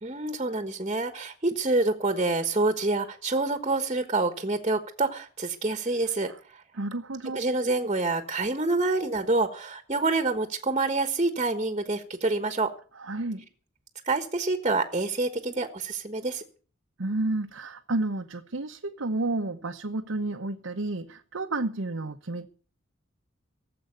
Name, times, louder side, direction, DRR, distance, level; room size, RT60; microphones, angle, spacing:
voice 1, 0.0-6.6 7.3-12.7 14.0-16.4, right 3 dB, 30° right, 1.3 m, -27 dB
voice 2, 6.7-7.4 13.0-13.5 17.0-22.5, right 2 dB, 85° right, 1.0 m, -31 dB
17.5 x 7.9 x 8.0 m
head